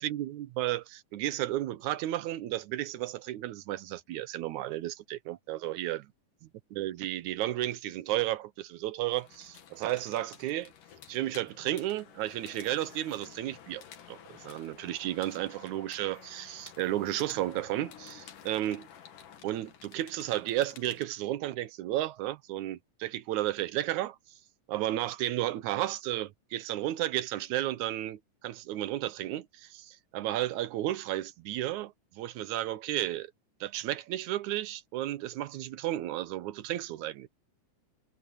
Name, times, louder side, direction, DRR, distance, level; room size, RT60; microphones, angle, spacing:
voice 1, 0.0-6.1 6.7-10.7 11.1-18.9 19.4-24.2 24.7-33.3 33.6-37.3, right 14 dB, 75° right, 2.1 m, -33 dB
sound 1, 9.1-21.0, left 9 dB, 75° left, 3.5 m, -52 dB
omnidirectional pair, 3.7 m